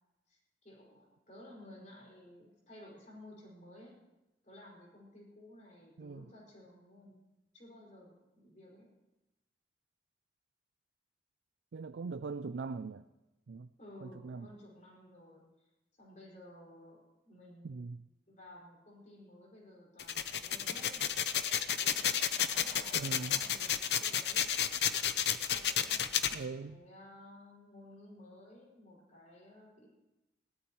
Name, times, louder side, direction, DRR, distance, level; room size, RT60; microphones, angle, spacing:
voice 1, 0.3-3.9 4.4-7.2 7.5-8.9 13.8-15.4 16.0-17.8 18.3-21.1 21.7-24.5 25.5-29.9, left 1 dB, 45° left, -3 dB, 5.6 m, -55 dB
voice 2, 11.7-13.1 13.5-13.7 14.0-14.5 17.6-18.0 22.9-23.4 26.3-26.8, right 4 dB, 90° right, 10 dB, 0.4 m, -41 dB
sound 1, 20.0-26.3, left 9 dB, 70° left, 0.8 m, -31 dB
21.5 x 17.0 x 3.1 m, 0.99 s
head